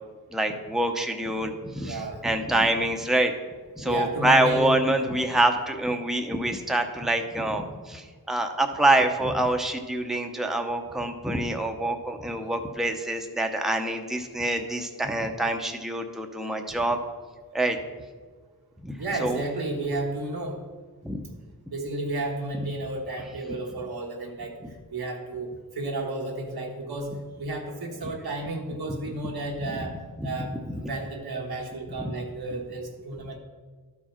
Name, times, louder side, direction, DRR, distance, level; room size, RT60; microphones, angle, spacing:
voice 1, 0.3-3.3 3.8-17.0 17.5-17.8 18.8-18.9 19.2-19.4 21.0-21.2 28.9-29.1 30.2-30.5 32.0-32.1, right 1 dB, ahead, 4 dB, 0.7 m, -26 dB
voice 2, 1.8-2.3 3.8-4.7 19.0-20.6 21.7-24.6 24.9-25.5 25.7-27.1 27.4-29.9 30.2-30.5 30.9-33.4, right 2 dB, 90° right, 0 dB, 1.3 m, -32 dB
12.0 x 4.7 x 4.4 m, 1.5 s
wide cardioid pair, 70°, 37 cm